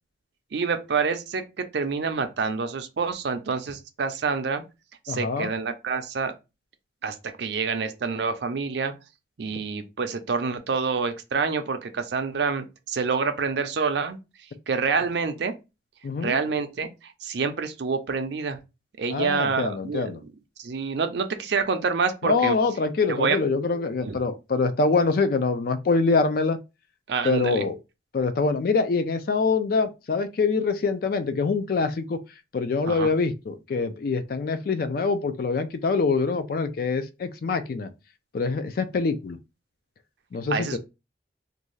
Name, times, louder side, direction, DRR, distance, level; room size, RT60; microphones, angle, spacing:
voice 1, 0.5-4.6 5.0-6.3 7.0-8.9 9.4-14.2 14.7-15.5 16.2-18.6 19.0-20.2 20.6-22.6 23.1-23.4 23.8-24.2 27.1-27.7 32.9-33.1 40.5-40.8, right 5 dB, 65° right, 0.5 m, -27 dB
voice 2, 5.1-5.5 9.5-9.6 16.0-16.4 19.1-20.2 22.2-26.6 27.2-27.8 28.1-32.2 32.5-37.9 38.3-39.4 40.3-40.8, left 4 dB, 50° left, 0.3 m, -24 dB
2.6 x 2.3 x 3.1 m
head